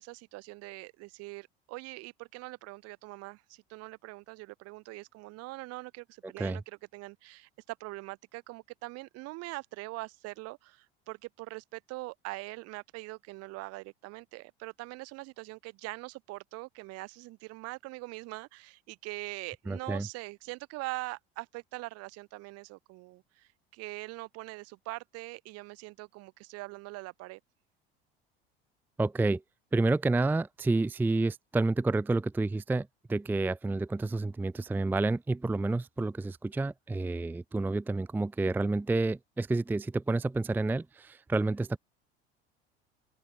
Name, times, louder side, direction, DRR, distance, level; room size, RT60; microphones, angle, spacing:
voice 1, 0.0-27.4, right 22 dB, 50° right, 2.6 m, -43 dB
voice 2, 19.7-20.1 29.0-29.4 29.7-41.8, right 2 dB, 5° right, 0.6 m, -29 dB
open air
figure-of-eight pair, 70°, 31 cm